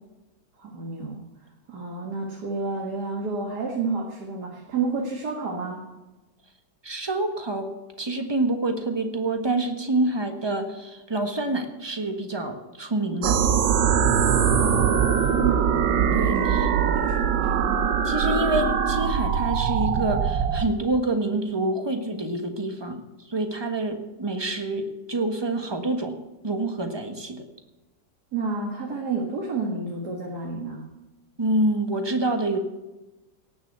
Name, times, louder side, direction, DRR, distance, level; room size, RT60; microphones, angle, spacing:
voice 1, 0.6-1.2 1.7-5.8 14.3-17.6 18.3-18.4 28.3-30.9, right 4 dB, 65° right, -1 dB, 2.3 m, -30 dB
voice 2, 6.8-7.7 8.0-13.4 16.1-16.7 18.0-23.0 23.3-26.1 26.4-27.4 31.4-32.6, right 2 dB, 15° right, 5 dB, 1.3 m, -27 dB
sound 1, 13.2-20.7, right 7 dB, 85° right, 1.6 m, -22 dB
17.5 x 7.1 x 8.1 m, 1.1 s
omnidirectional pair, 1.8 m